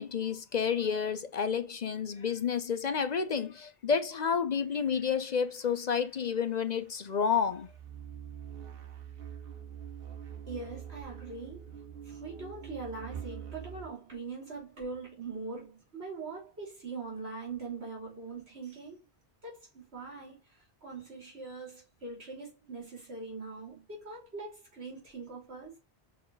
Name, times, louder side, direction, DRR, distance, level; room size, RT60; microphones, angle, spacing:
voice 1, 0.0-7.7, left 6 dB, 50° left, 0.7 m, -30 dB
sound 1, 4.7-13.9, right 8 dB, 65° right, 1.1 m, -45 dB
voice 2, 10.5-19.0 19.4-25.8, right 3 dB, 85° right, 3.5 m, -42 dB
6.4 x 4.3 x 3.9 m
omnidirectional pair, 1.0 m